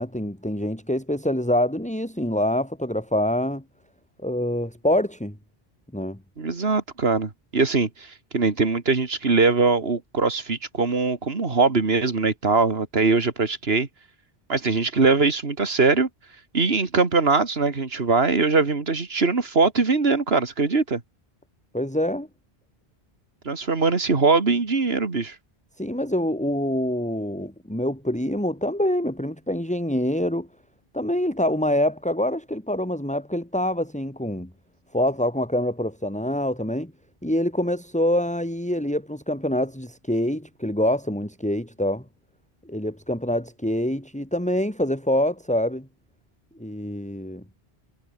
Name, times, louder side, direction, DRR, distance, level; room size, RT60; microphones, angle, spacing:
voice 1, 0.0-3.6 4.2-5.4 5.9-6.2 21.7-22.3 25.8-30.5 30.9-34.5 34.9-36.9 37.2-42.0 42.7-45.9 46.6-47.4, left 1 dB, 5° left, 3.7 m, -25 dB
voice 2, 6.4-13.9 14.5-16.1 16.5-21.0 23.5-25.4, right 4 dB, 70° right, 2.4 m, -22 dB
omnidirectional pair, 1.1 m